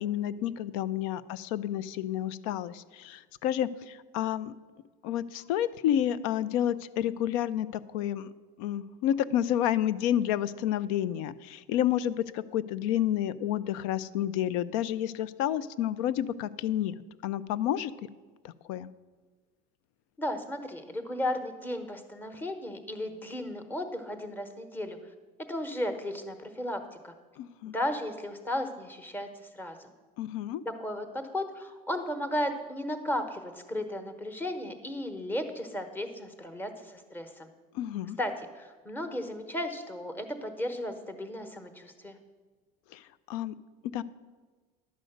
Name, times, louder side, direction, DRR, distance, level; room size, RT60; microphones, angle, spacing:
voice 1, 0.0-4.5 5.0-7.7 7.9-8.3 8.6-16.9 17.2-17.9 18.4-18.9 27.4-27.7 30.2-30.6 37.7-38.2 42.9-43.0 43.3-43.5 43.9-44.0, left 11 dB, 85° left, 17 dB, 0.5 m, -30 dB
voice 2, 20.2-25.0 25.5-27.1 27.7-29.9 30.6-37.5 38.2-42.2, left 1 dB, 10° left, 8 dB, 0.9 m, -35 dB
11.0 x 5.1 x 7.8 m, 1.4 s
cardioid pair, 150°, 17 cm